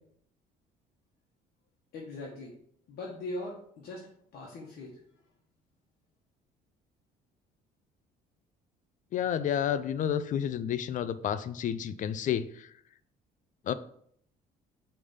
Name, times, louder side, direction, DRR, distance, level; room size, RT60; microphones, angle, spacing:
voice 1, 1.9-2.6 2.9-5.0, left 1 dB, 65° left, -3 dB, 1.3 m, -41 dB
voice 2, 9.1-12.4 13.7-13.8, left 9 dB, 50° left, 14 dB, 0.4 m, -30 dB
5.0 x 3.4 x 5.5 m, 0.64 s
cardioid pair, 110°, 17 cm